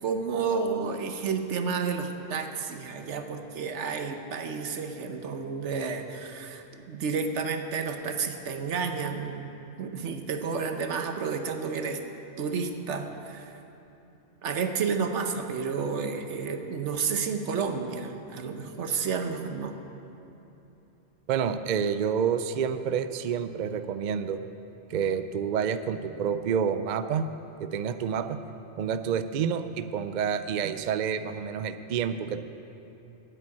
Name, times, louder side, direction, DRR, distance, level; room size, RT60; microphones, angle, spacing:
voice 1, 0.0-9.5 9.8-12.0 12.4-13.6 14.4-19.7, right 5 dB, 80° right, 6 dB, 1.2 m, -31 dB
voice 2, 21.3-24.4 24.9-27.3 27.6-28.4 28.8-32.4, right 7 dB, 55° right, 10 dB, 0.5 m, -28 dB
9.2 x 8.5 x 9.6 m, 2.9 s
omnidirectional pair, 1.2 m